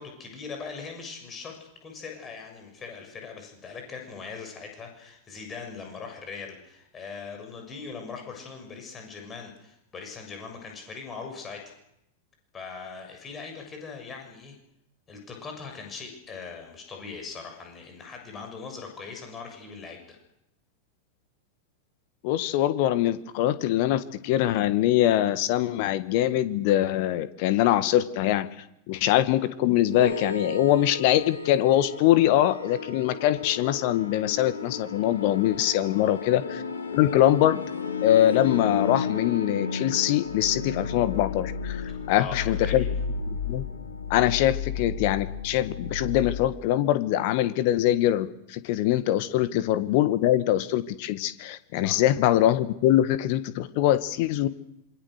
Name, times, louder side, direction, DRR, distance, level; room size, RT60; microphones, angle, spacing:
voice 1, 0.0-11.7 12.5-14.6 15.1-20.2 35.9-36.1 41.9-42.9 49.4-49.5 51.8-52.0, left 5 dB, 20° left, 3 dB, 6.9 m, -40 dB
voice 2, 22.2-28.5 28.9-36.6 36.9-37.6 38.0-42.9 43.3-43.6 44.1-54.5, left 13 dB, 45° left, 14 dB, 1.6 m, -23 dB
sound 1, 29.9-46.5, left 5 dB, 70° left, 1.9 m, -33 dB
27.0 x 24.5 x 6.6 m, 0.80 s
figure-of-eight pair, 90°, 0 cm